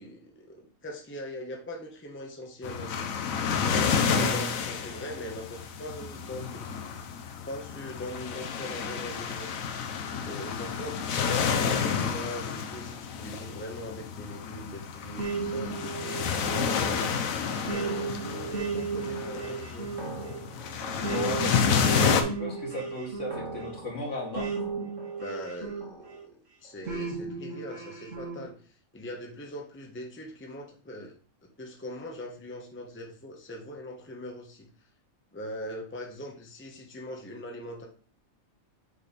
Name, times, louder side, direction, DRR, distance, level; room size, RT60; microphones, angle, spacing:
voice 1, 0.0-3.1 3.6-6.8 7.5-9.5 10.3-11.8 12.1-17.1 17.7-19.9 25.2-26.4 26.6-28.6 28.9-31.1 31.6-34.7 35.3-37.9, left 1 dB, 10° left, 1 dB, 0.8 m, -41 dB
sound 1, 2.6-22.2, left 6 dB, 80° left, 1.1 m, -30 dB
voice 2, 4.1-4.5 11.3-11.8 16.4-16.9 21.1-24.5, left 1 dB, 60° left, -2 dB, 2.2 m, -35 dB
sound 2, 15.2-26.2 26.9-28.4, right 4 dB, 65° right, 2.0 m, -35 dB
7.2 x 3.3 x 4.1 m, 0.43 s
omnidirectional pair, 1.4 m